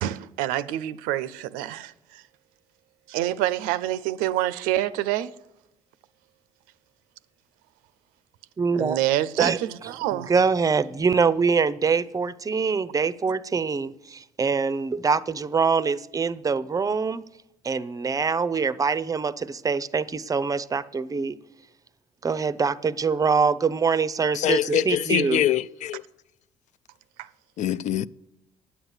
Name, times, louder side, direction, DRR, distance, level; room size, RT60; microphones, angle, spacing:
voice 1, 0.0-2.2 3.1-5.3 8.8-10.3 27.2-27.3, right 13 dB, 85° right, 0.5 m, -27 dB
voice 2, 8.6-9.0 9.4-9.6 10.1-17.2 17.6-21.4 22.2-25.5, right 5 dB, 25° right, 0.5 m, -24 dB
voice 3, 24.3-26.0 27.6-28.1, left 11 dB, 60° left, 0.4 m, -24 dB
9.5 x 7.9 x 8.1 m
supercardioid pair, 75°, 14 cm